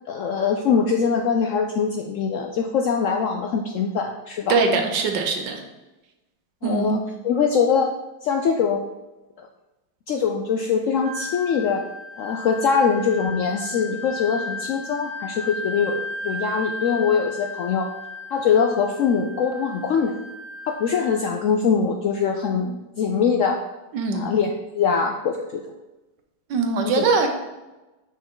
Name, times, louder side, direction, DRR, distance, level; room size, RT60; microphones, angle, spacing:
voice 1, 0.1-4.6 6.6-7.9 8.2-8.8 9.4-9.5 10.1-11.8 12.2-17.9 18.3-20.1 20.7-23.6 24.1-25.6 26.8-27.1, left 6 dB, 75° left, 3 dB, 0.7 m, -23 dB
voice 2, 4.5-5.6 6.6-6.9 23.9-24.3 26.5-27.3, right 4 dB, 85° right, 4 dB, 1.6 m, -22 dB
Wind instrument woodwind instrument, 11.0-21.4, left 2 dB, 40° right, 0.7 m, -35 dB
6.3 x 5.5 x 3.7 m, 1.1 s
omnidirectional pair, 1.8 m